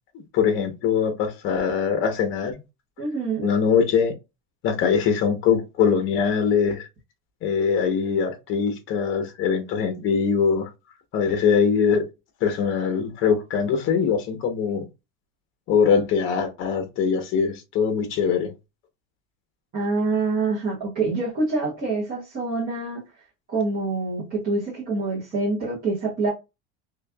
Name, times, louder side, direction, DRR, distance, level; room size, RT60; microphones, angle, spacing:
voice 1, 0.3-2.6 3.4-4.1 4.6-6.9 7.4-10.7 11.1-12.0 12.4-14.8 15.7-18.5, left 6 dB, 40° left, 1.0 m, -22 dB
voice 2, 3.0-3.5 19.7-23.0 23.5-26.3, right 3 dB, 30° right, 1.6 m, -26 dB
4.3 x 3.1 x 2.3 m
cardioid pair, 180°, 32 cm